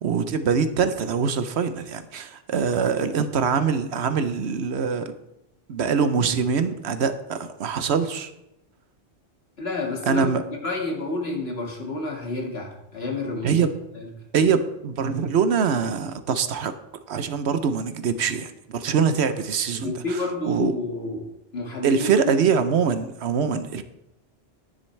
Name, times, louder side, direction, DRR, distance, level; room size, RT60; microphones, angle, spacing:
voice 1, 0.0-5.1 5.7-8.3 10.1-10.4 13.4-13.7 14.3-16.7 17.1-20.7 21.8-23.8, right 6 dB, 75° right, 10 dB, 1.0 m, -23 dB
voice 2, 9.6-10.3 10.6-13.7 13.9-14.1 19.8-22.3, left 2 dB, 60° left, 0 dB, 2.2 m, -30 dB
10.5 x 10.0 x 3.3 m, 0.86 s
omnidirectional pair, 1.2 m